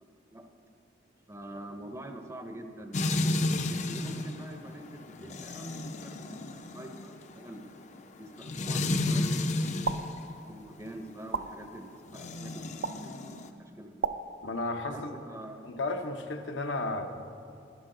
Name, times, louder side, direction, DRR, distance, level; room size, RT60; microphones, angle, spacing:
voice 1, 1.3-7.8 8.2-10.0 10.5-14.2 14.9-15.6, right 1 dB, 15° right, 5 dB, 0.6 m, -45 dB
sound 1, 2.9-10.2 12.1-13.5, left 2 dB, 40° left, 0.5 m, -32 dB
sound 2, 9.8-10.0 11.3-11.5 12.8-12.9 14.0-14.2, right 5 dB, 60° right, 0.4 m, -29 dB
voice 2, 14.4-15.1 15.6-17.1, left 2 dB, 85° left, 5 dB, 0.8 m, -33 dB
11.5 x 11.0 x 3.8 m, 2.5 s
head